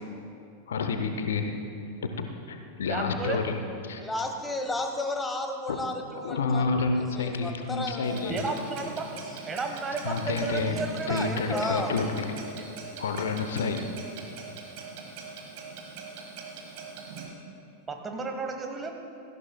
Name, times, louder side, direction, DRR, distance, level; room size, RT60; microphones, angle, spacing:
voice 1, 0.7-1.5 2.0-3.5 3.8-4.0 5.7-5.8 6.2-8.4 10.0-12.2 13.0-13.8, left 4 dB, 65° left, 6 dB, 0.8 m, -29 dB
voice 2, 2.9-3.4 8.3-9.1 9.5-12.0 17.9-18.9, right 4 dB, 20° right, 4 dB, 1.2 m, -33 dB
voice 3, 4.0-6.6 6.9-8.9 11.4-11.9, left 2 dB, 10° left, 4 dB, 1.3 m, -33 dB
Clock, 8.0-17.3, right 4 dB, 45° right, 1.8 m, -42 dB
17.5 x 14.5 x 2.3 m, 2.5 s
figure-of-eight pair, 90°, 0 cm